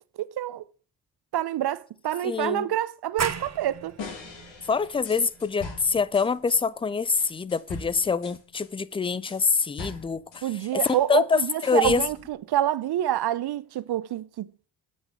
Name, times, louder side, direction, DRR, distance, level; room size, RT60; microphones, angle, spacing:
voice 1, 0.2-0.6 1.3-4.0 10.4-14.7, right 12 dB, 50° right, 0.7 m, -27 dB
voice 2, 2.2-2.7 4.6-12.0, left 5 dB, 10° left, 0.4 m, -25 dB
sound 1, 3.2-8.6, right 6 dB, 35° right, 1.0 m, -38 dB
sound 2, 4.0-6.6 7.2-11.1 11.3-12.3, left 4 dB, 65° left, 2.6 m, -41 dB
8.4 x 5.9 x 5.4 m
hypercardioid pair, 45°, 49 cm